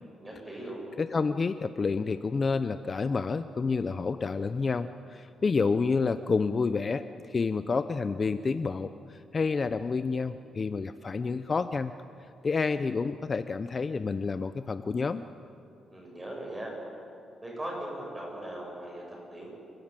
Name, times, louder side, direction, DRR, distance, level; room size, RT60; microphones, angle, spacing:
voice 1, 0.2-0.8 15.9-16.7 17.4-19.5, right 1 dB, 15° right, -2 dB, 7.8 m, -39 dB
voice 2, 1.0-11.9 12.4-15.2, left 4 dB, 35° left, 11 dB, 0.6 m, -29 dB
28.5 x 13.0 x 8.9 m, 2.5 s
cardioid pair, 115°, 0 cm